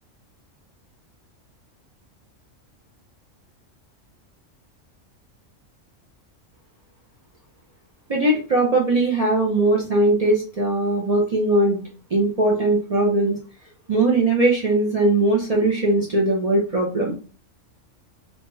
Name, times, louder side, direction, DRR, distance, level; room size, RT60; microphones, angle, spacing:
voice 1, 8.1-13.4 13.9-17.2, right 2 dB, 70° right, -2 dB, 0.3 m, -20 dB
2.8 x 2.2 x 3.0 m, 0.38 s
omnidirectional pair, 1.3 m